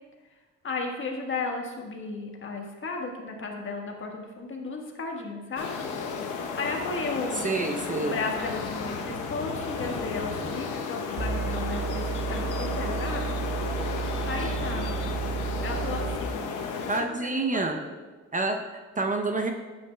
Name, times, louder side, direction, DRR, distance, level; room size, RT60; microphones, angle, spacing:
voice 1, 0.6-5.7 6.6-7.6 8.0-13.3 14.3-14.9 15.6-17.9, left 3 dB, 40° left, 1 dB, 1.4 m, -34 dB
sound 1, 5.6-17.0, left 5 dB, 80° left, 0.9 m, -33 dB
voice 2, 7.3-8.2 14.4-14.6 16.9-17.8 18.3-19.5, right 3 dB, 25° right, 4 dB, 0.6 m, -28 dB
sound 2, 11.2-16.2, right 7 dB, 45° right, 1.5 m, -32 dB
9.4 x 7.7 x 2.2 m, 1.3 s
cardioid pair, 90°, 30 cm